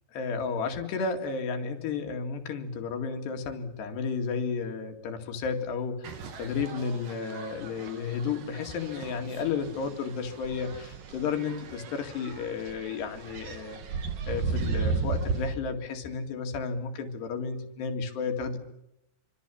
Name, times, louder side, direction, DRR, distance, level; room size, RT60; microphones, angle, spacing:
voice 1, 0.1-13.8 14.2-18.6, left 5 dB, 70° left, 5 dB, 4.3 m, -32 dB
sound 1, 6.0-15.5, right 4 dB, 55° right, 3.5 m, -35 dB
26.5 x 25.5 x 7.1 m, 0.87 s
omnidirectional pair, 5.1 m